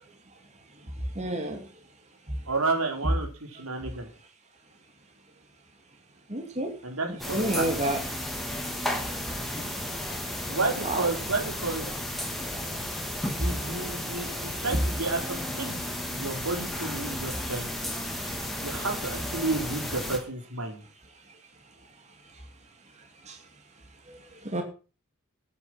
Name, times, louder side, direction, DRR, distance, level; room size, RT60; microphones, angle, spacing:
voice 1, 1.2-1.6 6.3-6.7 7.3-8.0 10.8-11.0 13.4-13.5 24.5-24.6, right 1 dB, 30° right, 4 dB, 2.9 m, -28 dB
voice 2, 2.5-4.1 6.8-7.7 10.5-11.9 13.4-17.8 18.6-20.8, right 3 dB, 85° right, 3 dB, 4.5 m, -31 dB
sound 1, 7.2-20.2, left 1 dB, ahead, 4.0 m, -33 dB
15.0 x 9.9 x 6.1 m, 0.36 s
head